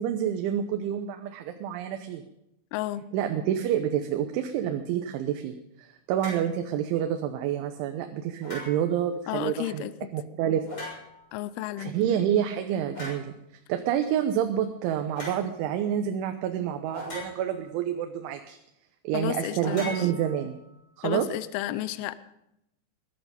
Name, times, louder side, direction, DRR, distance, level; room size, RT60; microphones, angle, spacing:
voice 1, 0.0-2.2 3.1-5.5 5.8-10.7 11.8-13.3 13.7-18.6 19.0-20.6 21.0-21.3, right 10 dB, 85° right, 6 dB, 3.4 m, -28 dB
voice 2, 2.7-3.0 9.3-9.9 11.3-12.0 19.1-20.1 21.0-22.2, left 14 dB, 85° left, 14 dB, 2.2 m, -32 dB
sound 1, 6.2-6.5 8.4-9.0 10.6-11.3 12.9-13.3 15.1-15.4 16.9-17.7 19.6-20.7, left 1 dB, 25° left, 6.9 m, -40 dB
21.0 x 11.5 x 5.2 m, 0.83 s
omnidirectional pair, 5.3 m